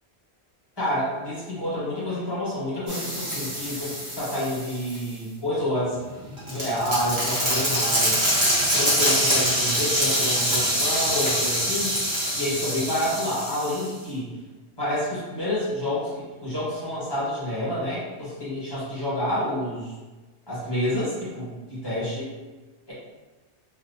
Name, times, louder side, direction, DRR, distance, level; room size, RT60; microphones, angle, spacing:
voice 1, 0.8-6.0 6.4-11.9 12.3-14.3 14.8-19.9 20.5-22.3 22.9-23.0, left 1 dB, 20° left, -10 dB, 1.4 m, -28 dB
sound 1, 2.9-5.0 6.0-13.9, equal, 25° right, 1.1 m, -25 dB
3.3 x 2.9 x 2.7 m, 1.2 s
omnidirectional pair, 1.1 m